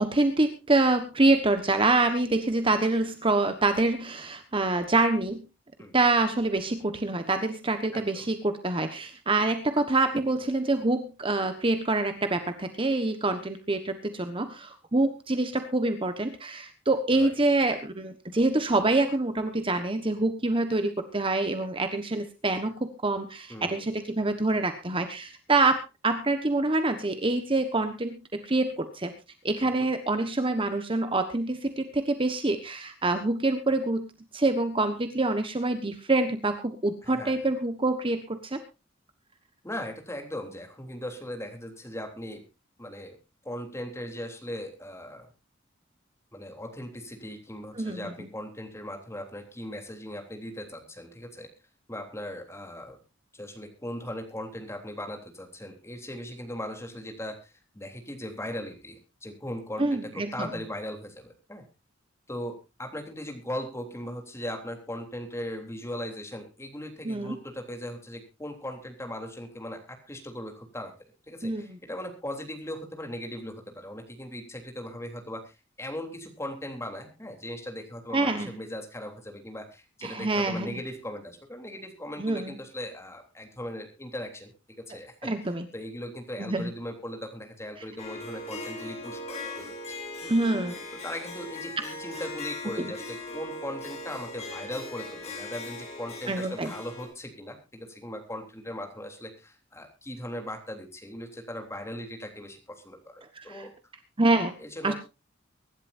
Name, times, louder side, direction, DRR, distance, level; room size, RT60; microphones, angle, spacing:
voice 1, 0.0-5.5 5.9-29.1 29.4-38.6 47.8-48.1 59.8-60.5 67.0-67.4 71.4-71.8 78.1-78.5 80.0-80.8 82.2-82.6 85.2-85.6 86.4-86.7 90.3-90.8 92.8-92.9 96.3-96.7 103.4-103.6 104.2-104.5 104.8-104.9, right 2 dB, 25° right, 8 dB, 1.3 m, -26 dB
voice 2, 7.9-8.3 17.1-17.4 23.5-23.9 29.6-29.9 37.0-37.5 39.6-42.4 42.8-43.2 43.4-45.3 46.3-51.5 51.9-53.0 53.3-61.6 62.3-69.8 70.1-70.9 71.3-89.9 90.2-90.4 91.0-103.7 104.6-104.9, left 1 dB, 15° left, 4 dB, 3.3 m, -39 dB
Harp, 88.0-97.1, left 2 dB, 35° left, 7.4 m, -39 dB
24.0 x 12.0 x 2.7 m, 0.28 s
head